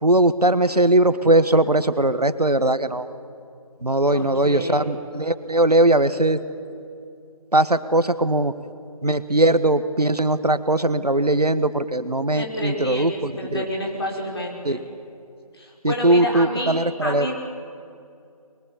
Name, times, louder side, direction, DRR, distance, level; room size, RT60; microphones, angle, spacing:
voice 1, 0.0-3.1 3.8-6.4 7.5-8.5 9.0-13.7 14.6-14.8 15.8-17.3, right 1 dB, 85° right, 12 dB, 1.5 m, -20 dB
voice 2, 4.1-4.9 12.3-14.9 15.5-16.7 17.0-17.4, left 1 dB, 40° left, -1 dB, 5.7 m, -29 dB
23.5 x 22.5 x 8.8 m, 2.5 s
figure-of-eight pair, 160°, 20 cm